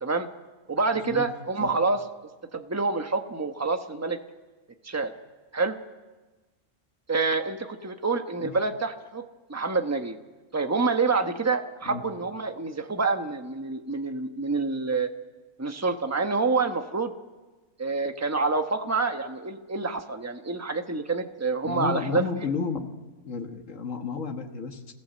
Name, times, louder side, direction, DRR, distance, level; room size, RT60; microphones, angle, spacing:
voice 1, 0.7-2.0 2.5-4.2 4.8-5.1 5.5-5.8 7.1-9.2 9.5-10.2 10.5-15.1 15.6-17.1 17.8-22.2, right 4 dB, 15° right, 6 dB, 1.1 m, -27 dB
voice 2, 21.6-22.9 23.2-24.9, left 5 dB, 75° left, 4 dB, 1.8 m, -32 dB
26.5 x 16.0 x 7.7 m, 1.2 s
omnidirectional pair, 1.3 m